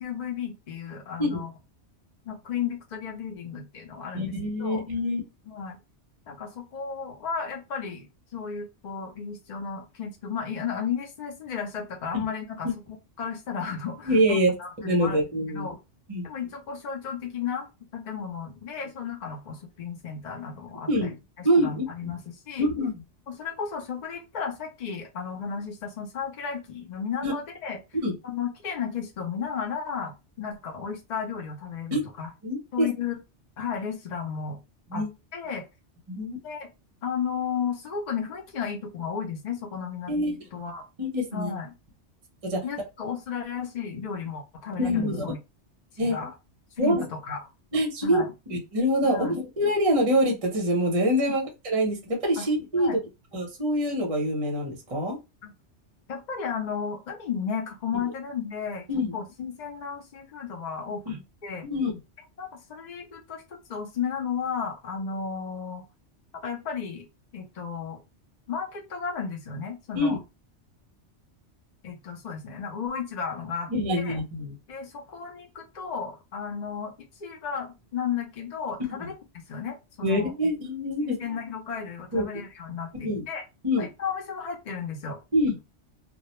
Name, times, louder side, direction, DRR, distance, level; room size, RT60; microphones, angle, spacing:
voice 1, 0.0-1.5 2.2-4.3 4.6-4.8 5.5-5.8 6.3-12.7 13.2-15.2 15.5-15.8 16.2-17.7 17.9-22.7 23.3-27.8 28.2-32.3 32.7-33.2 33.6-34.6 34.9-35.0 35.3-35.6 36.4-36.7 37.0-40.1 40.5-40.8 41.3-41.7 42.6-45.4 45.9-46.3 46.8-47.5 48.0-48.3 49.0-49.4 52.4-52.5 52.8-53.0 55.4-55.5 56.1-58.8 59.1-61.6 62.4-63.4 63.7-65.8 66.3-67.1 67.3-68.0 68.5-70.2 71.8-74.2 74.7-79.1 79.5-80.3 81.0-83.4 83.8-85.2, left 6 dB, 50° left, 1 dB, 0.5 m, -34 dB
voice 2, 4.1-5.2 12.1-12.2 14.0-15.7 16.1-16.3 20.9-21.2 21.4-22.1 22.6-22.9 27.2-27.3 28.0-28.1 31.9-32.0 32.4-32.9 34.9-35.1 36.1-36.4 40.1-40.4 41.0-41.5 42.4-42.6 44.8-45.2 46.0-46.3 46.8-47.1 47.7-48.2 48.5-53.0 53.3-55.2 58.9-59.1 61.1-61.2 61.6-62.0 69.9-70.2 73.7-74.5 78.8-78.9 80.0-81.2 82.1-82.3 82.9-83.2 83.6-83.8 85.3-85.5, equal, 35° right, 0 dB, 0.7 m, -25 dB
2.3 x 2.1 x 2.9 m, 0.25 s
omnidirectional pair, 1.2 m